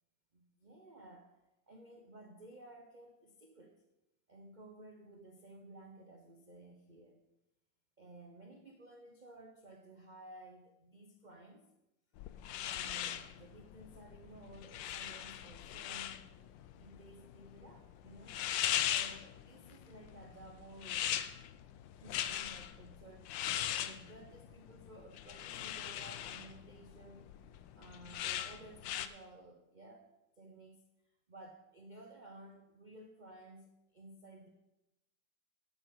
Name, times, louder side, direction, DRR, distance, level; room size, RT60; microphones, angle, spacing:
voice 1, 0.3-1.4 1.7-3.8 4.3-7.2 8.0-11.7 12.6-16.2 16.8-18.5 18.9-21.2 21.9-23.3 23.7-27.3 27.8-30.1 30.4-30.8 31.3-34.5, right 1 dB, 40° right, 3 dB, 0.7 m, -55 dB
sound 1, 12.2-29.1, left 11 dB, 80° left, 1.3 m, -40 dB
9.7 x 7.8 x 6.3 m, 0.91 s
omnidirectional pair, 2.0 m